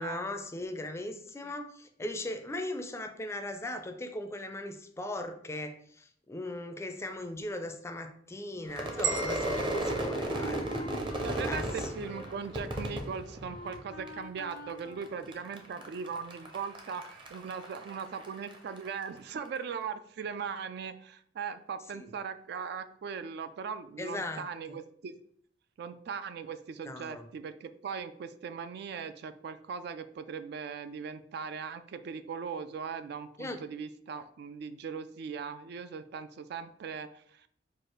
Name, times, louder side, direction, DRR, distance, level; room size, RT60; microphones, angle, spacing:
voice 1, 0.0-10.8 11.4-12.2 21.9-22.1 24.0-24.4 26.9-27.2 33.4-33.6, left 1 dB, 15° left, 6 dB, 0.4 m, -38 dB
Wind instrument woodwind instrument, 8.7-15.9, left 2 dB, 85° left, 0.6 m, -48 dB
Crowd / Fireworks, 8.7-14.1 14.4-15.0 15.3-18.9, right 1 dB, 25° right, 0.6 m, -35 dB
sound 1, 9.0-11.2, right 5 dB, 80° right, 0.7 m, -37 dB
voice 2, 10.3-10.6 11.2-25.2 25.8-37.5, right 6 dB, 60° right, 11 dB, 0.3 m, -39 dB
4.7 x 2.4 x 4.4 m, 0.64 s
head